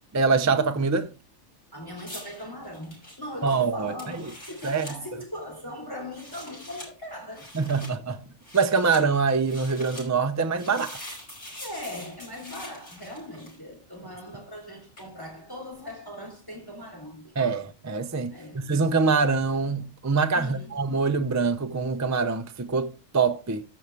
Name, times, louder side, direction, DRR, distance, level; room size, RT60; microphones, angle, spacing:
voice 1, 0.1-1.1 3.4-3.9 4.6-4.9 7.5-8.2 8.5-11.0 17.4-23.6, right 4 dB, 20° right, 0.4 m, -24 dB
voice 2, 1.7-7.5 7.8-8.0 11.6-17.3 18.3-18.7 20.3-20.7, left 1 dB, 15° left, 3.3 m, -40 dB
sound 1, 2.0-5.0 6.0-6.9 7.3-7.9 8.4-9.0 9.4-10.1 10.5-13.7 15.0-15.1, left 1 dB, 45° left, 5.5 m, -44 dB
15.0 x 6.3 x 3.3 m
omnidirectional pair, 1.4 m